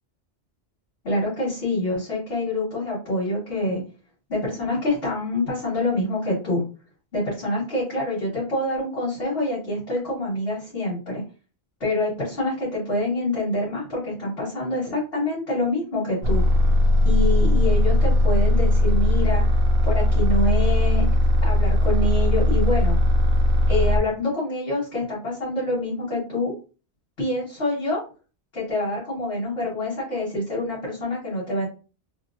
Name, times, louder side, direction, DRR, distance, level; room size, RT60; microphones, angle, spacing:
voice 1, 1.0-3.8 4.3-6.6 7.1-11.2 11.8-16.4 17.0-19.4 19.8-21.1 21.4-23.0 23.7-26.5 27.2-28.0 28.5-31.7, left 1 dB, 70° left, -7 dB, 1.6 m, -26 dB
sound 1, 16.2-24.0, left 1 dB, 65° right, 0.8 m, -19 dB
3.0 x 2.8 x 2.5 m, 0.34 s
omnidirectional pair, 1.1 m